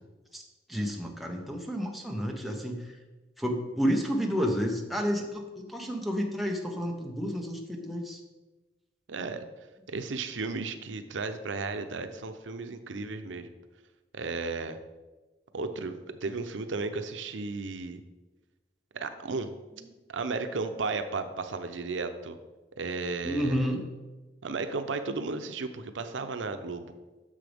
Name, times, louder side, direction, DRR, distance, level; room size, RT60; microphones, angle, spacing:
voice 1, 0.7-2.9 3.4-8.2 23.2-23.8, equal, ahead, 0 dB, 1.0 m, -30 dB
voice 2, 9.1-9.5 9.9-13.5 14.1-14.8 15.5-18.0 18.9-19.5 20.1-22.4 22.8-23.6 24.4-26.9, right 3 dB, 90° right, 9 dB, 0.6 m, -34 dB
10.0 x 6.7 x 3.5 m, 1.2 s
head